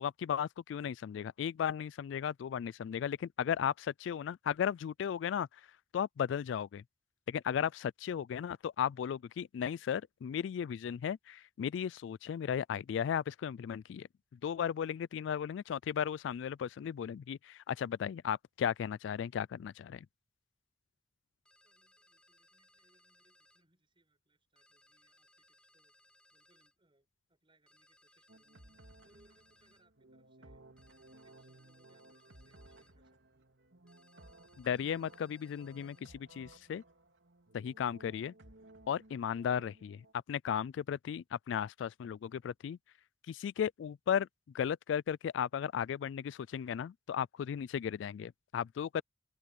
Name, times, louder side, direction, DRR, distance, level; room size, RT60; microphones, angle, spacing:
voice 1, 0.0-5.5 5.9-6.8 7.3-14.1 14.4-20.1 34.6-36.8 37.5-38.3 38.9-42.8 43.3-44.3 44.5-49.0, left 8 dB, 75° left, 0.3 m, -35 dB
sound 1, 21.5-23.6 24.6-26.7 27.7-29.9 30.8-33.0 33.9-36.1, left 1 dB, 5° left, 4.7 m, -68 dB
voice 2, 21.6-25.9 26.3-28.8 29.0-33.5, right 2 dB, 30° right, 5.0 m, -73 dB
sound 2, 28.3-40.1, right 1 dB, 80° right, 3.1 m, -59 dB
Wind instrument woodwind instrument, 30.7-36.6, right 2 dB, 65° right, 6.2 m, -74 dB
open air
head